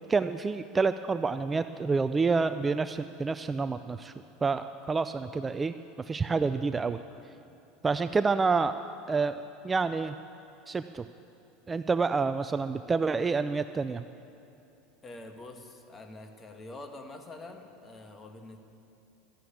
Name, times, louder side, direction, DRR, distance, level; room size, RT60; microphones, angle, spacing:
voice 1, 0.1-4.1 4.4-5.7 6.1-7.0 7.8-10.1 10.7-11.0 11.7-14.0, right 4 dB, 20° right, 11 dB, 0.4 m, -28 dB
voice 2, 15.0-18.6, left 2 dB, 25° left, 5 dB, 1.7 m, -45 dB
13.0 x 11.0 x 8.6 m, 2.8 s
hypercardioid pair, 100°, 0 cm